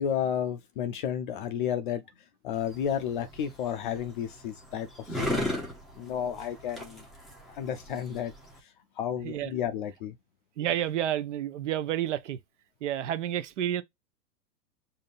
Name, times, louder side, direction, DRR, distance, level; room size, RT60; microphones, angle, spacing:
voice 1, 0.0-2.0 2.4-5.5 6.0-7.0 7.5-8.3 9.0-10.1, left 9 dB, 35° left, 0.5 m, -32 dB
sound 1, 2.5-8.6, left 1 dB, ahead, 0.8 m, -36 dB
voice 2, 10.6-12.4 12.8-13.8, right 11 dB, 45° right, 0.7 m, -30 dB
5.1 x 2.8 x 2.5 m
hypercardioid pair, 130°, 49 cm